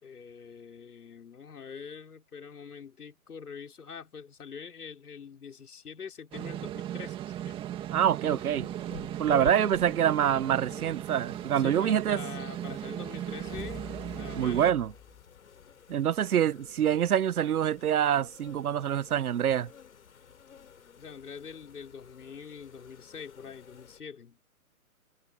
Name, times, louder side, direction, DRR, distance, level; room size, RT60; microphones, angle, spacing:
voice 1, 0.0-7.6 9.4-9.5 10.7-10.8 11.5-14.7 21.0-24.4, left 6 dB, 85° left, 4.6 m, -45 dB
sound 1, 6.3-14.7, right 12 dB, 10° right, 2.2 m, -37 dB
voice 2, 7.9-8.7 9.2-12.2 14.3-14.9 15.9-19.7, right 9 dB, 75° right, 0.9 m, -26 dB
sound 2, 8.2-24.0, left 6 dB, 65° left, 4.0 m, -50 dB
sound 3, 12.7-16.1, left 7 dB, 10° left, 3.2 m, -48 dB
hypercardioid pair, 165°, 44 cm